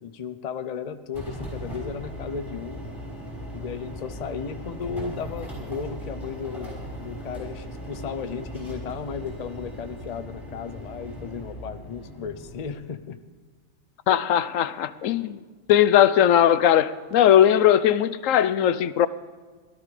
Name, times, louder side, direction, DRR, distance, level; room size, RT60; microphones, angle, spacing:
voice 1, 0.0-2.9 3.5-13.2, left 6 dB, 40° left, 0.7 m, -35 dB
sound 1, 1.1-12.8, equal, 20° left, 5.8 m, -38 dB
voice 2, 14.1-15.4 15.7-19.1, left 10 dB, 80° left, 1.0 m, -19 dB
17.0 x 12.5 x 4.9 m
omnidirectional pair, 1.4 m